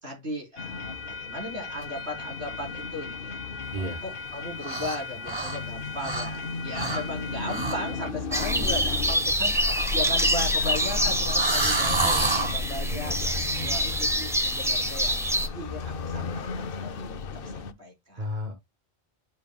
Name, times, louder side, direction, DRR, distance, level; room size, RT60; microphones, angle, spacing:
voice 1, 0.0-3.4 3.8-13.2 13.6-15.2 15.5-18.4, left 1 dB, 80° right, 4.3 m, -37 dB
sound 1, 0.6-17.7, left 5 dB, 65° left, 0.9 m, -36 dB
voice 2, 3.7-4.0 12.9-14.1 18.2-18.5, equal, 45° right, 1.5 m, -35 dB
sound 2, 4.6-5.0 5.3-6.4 6.7-7.0 7.4-7.9 8.3-8.6 9.5-12.6, right 3 dB, 25° right, 1.2 m, -29 dB
sound 3, 8.3-15.5, equal, 5° right, 0.8 m, -26 dB
12.0 x 5.3 x 2.3 m
omnidirectional pair, 1.1 m